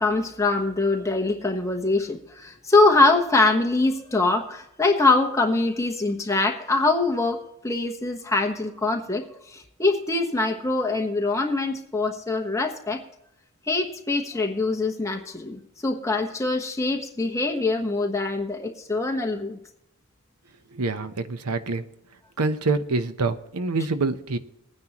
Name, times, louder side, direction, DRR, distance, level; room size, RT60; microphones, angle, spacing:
voice 1, 0.0-13.0 13.7-19.6, left 3 dB, 15° left, 3 dB, 1.1 m, -23 dB
voice 2, 20.7-21.8 22.4-24.4, right 3 dB, 90° right, 11 dB, 0.8 m, -26 dB
19.5 x 9.6 x 3.0 m, 0.84 s
head